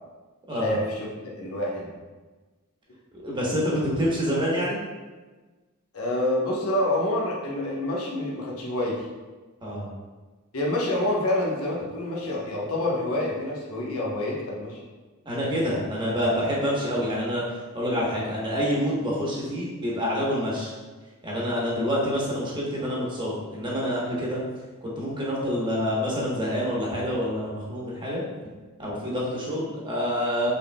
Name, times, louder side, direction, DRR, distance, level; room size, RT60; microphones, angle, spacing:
voice 1, 0.5-1.9 5.9-9.1 10.5-14.8, left 1 dB, 80° left, -3 dB, 1.1 m, -27 dB
voice 2, 3.2-4.8 9.6-9.9 15.2-17.4 17.7-20.7 21.2-24.4 24.8-28.2 28.8-30.5, equal, 20° right, -5 dB, 1.1 m, -27 dB
6.2 x 3.7 x 2.3 m, 1.3 s
head